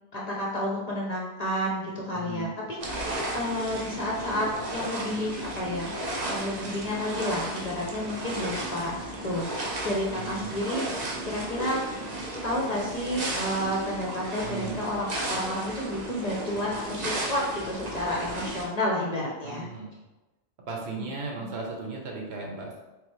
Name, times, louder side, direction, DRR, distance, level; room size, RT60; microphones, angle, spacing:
voice 1, 0.1-5.9 6.3-11.0 11.2-11.8 12.4-19.6, left 1 dB, 45° left, -4 dB, 0.6 m, -31 dB
voice 2, 2.1-2.6 10.2-10.6 14.4-14.8 19.4-20.1 20.7-22.8, right 4 dB, 65° right, -1 dB, 1.0 m, -36 dB
sound 1, 2.8-18.6, right 1 dB, 45° right, 0.7 m, -34 dB
3.7 x 3.2 x 3.1 m, 1.1 s
omnidirectional pair, 1.2 m